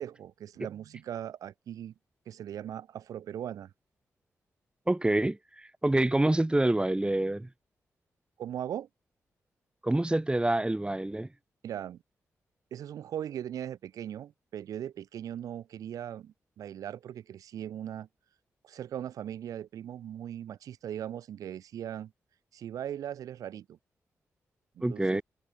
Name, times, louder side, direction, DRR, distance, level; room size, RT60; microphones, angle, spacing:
voice 1, 0.0-1.9 2.3-3.7 8.4-8.9 11.6-12.0 12.7-18.1 18.6-22.1 22.5-23.8 24.8-25.2, right 10 dB, 90° right, 5.2 m, -39 dB
voice 2, 4.9-7.5 9.8-11.3 24.8-25.2, right 1 dB, 15° right, 3.9 m, -27 dB
cardioid pair, 55°, 6 cm